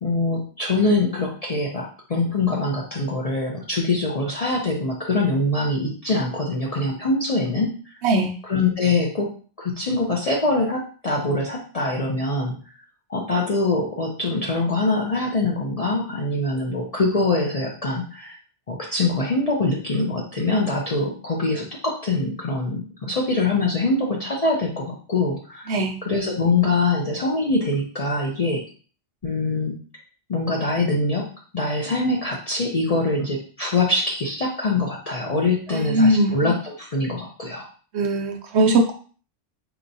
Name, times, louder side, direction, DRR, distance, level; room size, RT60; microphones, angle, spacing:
voice 1, 0.0-7.8 8.4-9.3 9.6-12.6 13.1-18.3 18.7-25.7 26.0-28.6 29.2-29.7 30.3-31.3 31.5-37.7, left 2 dB, 45° left, -2 dB, 0.5 m, -23 dB
voice 2, 35.7-36.3 37.9-38.9, right 1 dB, 65° right, 3 dB, 0.9 m, -19 dB
4.4 x 2.9 x 2.6 m, 0.40 s
omnidirectional pair, 1.3 m